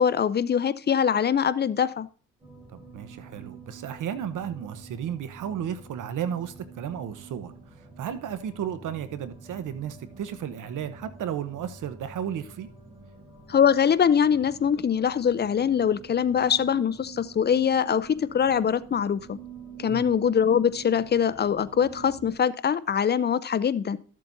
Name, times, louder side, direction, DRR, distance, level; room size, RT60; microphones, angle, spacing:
voice 1, 0.0-2.1 13.5-19.4 19.8-24.0, left 8 dB, 30° left, 0.5 m, -23 dB
sound 1, 2.4-22.3, right 5 dB, 10° right, 4.3 m, -46 dB
voice 2, 2.7-12.7 19.9-20.1, right 9 dB, 70° right, 1.0 m, -34 dB
13.5 x 7.5 x 2.7 m
cardioid pair, 85°, 32 cm